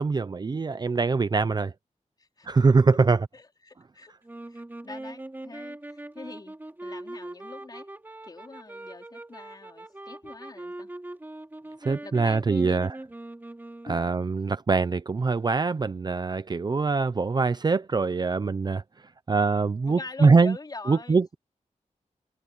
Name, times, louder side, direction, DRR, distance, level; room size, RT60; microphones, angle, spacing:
voice 1, 0.0-1.7 2.5-3.3 11.8-12.9 13.9-18.8 19.3-20.6 20.9-21.3, right 4 dB, 35° right, 0.6 m, -23 dB
voice 2, 2.2-2.5 3.3-4.1 4.5-7.9 8.2-10.9 12.0-12.8 13.8-14.3 19.9-21.2, left 3 dB, 30° left, 4.3 m, -44 dB
sound 1, 4.2-14.3, right 1 dB, 15° right, 2.9 m, -41 dB
wide cardioid pair, 145°, 13 cm